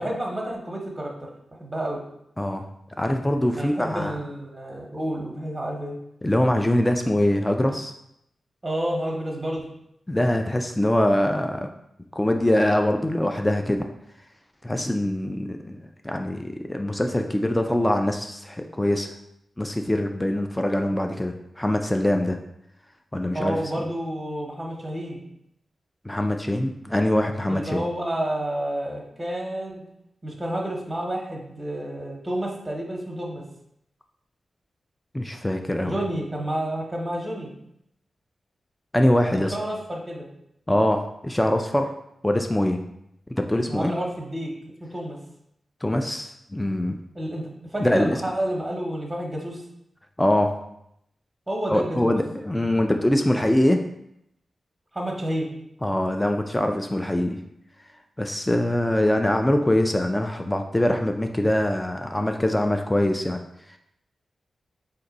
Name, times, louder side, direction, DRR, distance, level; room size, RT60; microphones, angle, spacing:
voice 1, 0.0-1.3 1.6-2.0 3.6-6.0 8.6-9.7 23.3-25.2 27.5-29.8 30.2-33.4 35.8-37.5 39.3-40.3 43.6-44.5 44.9-45.2 47.1-49.6 51.5-52.2 54.9-55.5, right 1 dB, 15° right, -1 dB, 0.9 m, -30 dB
voice 2, 3.0-4.1 6.2-7.9 10.1-11.7 12.2-13.8 14.6-15.8 16.0-19.1 19.6-22.4 23.1-23.6 26.0-27.8 35.1-35.9 38.9-39.6 40.7-41.9 42.2-42.8 43.3-43.9 45.8-47.0 47.8-48.2 50.2-50.6 51.7-53.8 55.8-57.4 58.2-63.4, left 1 dB, 15° left, 4 dB, 0.4 m, -23 dB
3.8 x 2.6 x 3.9 m, 0.78 s
cardioid pair, 50°, 0 cm